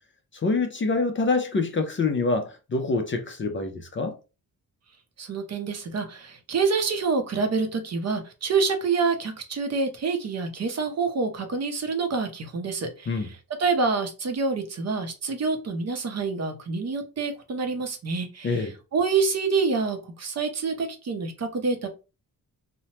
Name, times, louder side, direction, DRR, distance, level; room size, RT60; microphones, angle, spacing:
voice 1, 0.4-4.1 13.1-13.3 18.4-18.7, left 3 dB, 35° left, 0.4 m, -25 dB
voice 2, 5.2-21.9, right 4 dB, 45° right, 0.6 m, -27 dB
3.0 x 2.1 x 2.8 m
wide cardioid pair, 135°, 37 cm